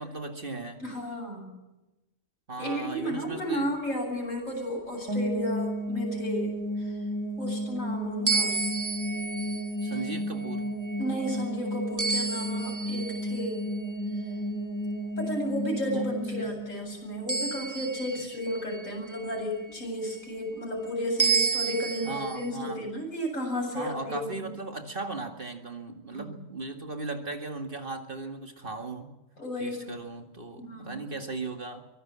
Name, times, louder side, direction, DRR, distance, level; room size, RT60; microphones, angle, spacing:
voice 1, 0.0-0.8 2.5-3.7 9.8-10.7 15.9-16.1 16.4-16.5 18.3-18.4 20.5-20.6 22.1-22.8 23.7-29.1 29.6-31.9, right 3 dB, 40° right, 5 dB, 2.2 m, -37 dB
voice 2, 0.8-1.5 2.6-7.0 7.4-8.7 11.0-13.6 15.2-24.5 26.1-26.4 29.4-29.9 30.6-31.1, equal, 70° left, 1 dB, 8.6 m, -33 dB
sound 1, 5.1-18.0, equal, 70° right, 4.6 m, -33 dB
sound 2, 8.3-13.8 17.3-19.3 21.2-22.5, right 5 dB, 15° right, 0.9 m, -31 dB
24.0 x 18.5 x 7.5 m, 1.0 s
omnidirectional pair, 1.4 m